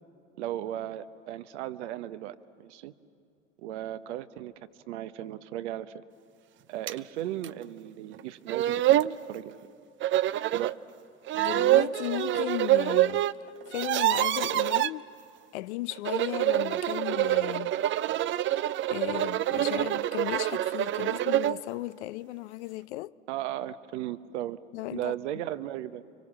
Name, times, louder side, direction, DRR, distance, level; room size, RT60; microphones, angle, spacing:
voice 1, 0.4-2.9 3.6-4.5 4.9-6.0 6.7-9.0 9.3-9.7 10.5-10.7 23.3-24.6 24.9-26.0, right 13 dB, 70° right, 1.0 m, -36 dB
sound 1, 6.9-7.0 7.4-7.5 8.2-8.3 8.5-9.1 10.0-10.7 11.3-13.3 13.6-14.9 15.9-21.6, right 14 dB, 35° right, 0.5 m, -26 dB
voice 2, 11.3-13.3 13.7-15.1 15.5-17.8 18.5-18.6 18.9-23.1 24.7-25.2, left 18 dB, 70° left, 0.6 m, -36 dB
29.5 x 24.5 x 7.5 m
hypercardioid pair, 80°, 35 cm